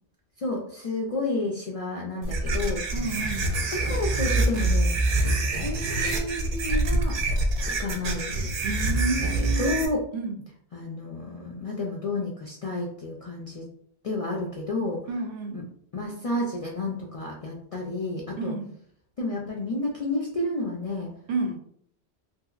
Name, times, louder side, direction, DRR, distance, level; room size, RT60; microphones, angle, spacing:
voice 1, 0.4-2.8 3.7-5.0 5.6-7.2 7.8-8.5 9.4-10.0 10.7-13.7 14.0-15.0 15.5-15.6 15.9-18.5 19.2-21.1, left 2 dB, 60° left, -2 dB, 0.3 m, -31 dB
sound 1, 2.2-9.9, right 2 dB, 55° right, 0.5 m, -25 dB
voice 2, 2.9-3.5 8.6-9.8 10.1-10.4 15.1-15.6 18.4-18.7 21.3-21.6, right 3 dB, 85° right, 4 dB, 0.9 m, -30 dB
2.9 x 2.6 x 2.4 m, 0.65 s
omnidirectional pair, 1.1 m